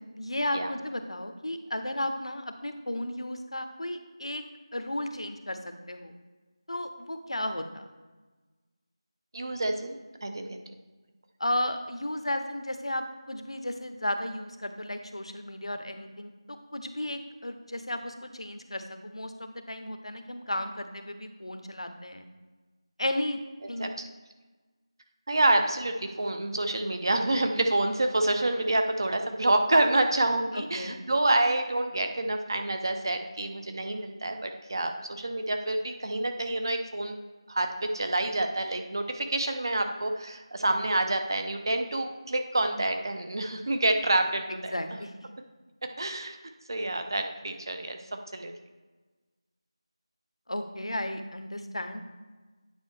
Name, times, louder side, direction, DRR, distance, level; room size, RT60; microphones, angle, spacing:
voice 1, 0.0-4.4 4.7-5.6 5.9-6.1 6.7-7.9 11.4-22.3 23.0-23.4 23.7-23.9 30.5-31.0 44.5-45.1 50.5-52.0, left 1 dB, 75° left, 8 dB, 0.9 m, -34 dB
voice 2, 9.3-10.6 23.8-23.9 25.3-37.2 37.5-44.7 46.0-46.4 46.7-48.0 48.3-48.5, right 2 dB, 45° right, 6 dB, 0.8 m, -27 dB
9.2 x 5.3 x 3.4 m, 1.3 s
figure-of-eight pair, 170°, 3 cm